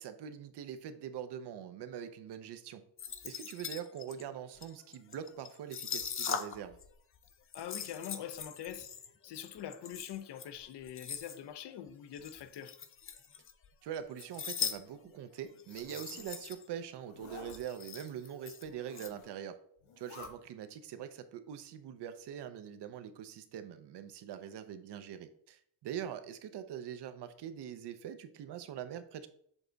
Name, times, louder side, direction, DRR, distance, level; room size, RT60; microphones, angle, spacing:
voice 1, 0.0-2.8 3.2-6.8 13.8-19.6 20.0-29.3, right 9 dB, 60° right, 0.7 m, -43 dB
sound 1, 3.0-6.9 7.1-11.4 12.1-13.7 13.9-14.8 15.0-15.2 15.6-16.7 17.0-17.1 17.2-19.1, left 7 dB, 30° left, 0.4 m, -41 dB
voice 2, 7.5-8.9 9.2-12.8, left 9 dB, 60° left, 0.7 m, -44 dB
Zipper (clothing), 15.6-16.4 17.0-17.6 18.7-19.4 19.8-20.3, left 4 dB, 90° left, 1.9 m, -52 dB
7.2 x 3.4 x 3.9 m
cardioid pair, 155°, 47 cm